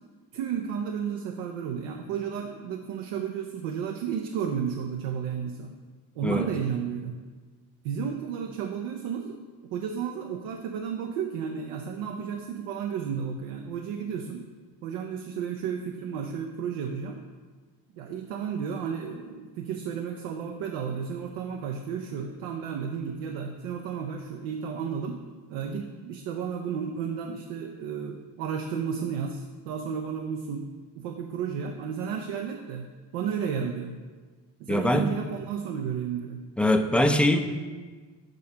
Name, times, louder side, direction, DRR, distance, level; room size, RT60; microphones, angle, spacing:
voice 1, 0.3-5.7 6.2-7.2 7.8-9.4 9.7-14.4 14.8-17.2 18.0-25.2 25.5-30.7 31.0-32.9 33.1-34.0 34.6-36.4, right 7 dB, 80° right, 3 dB, 0.6 m, -32 dB
voice 2, 34.7-35.1 36.6-37.4, left 1 dB, 5° left, 6 dB, 0.4 m, -22 dB
6.3 x 6.3 x 2.8 m, 1.4 s
hypercardioid pair, 55°, 48 cm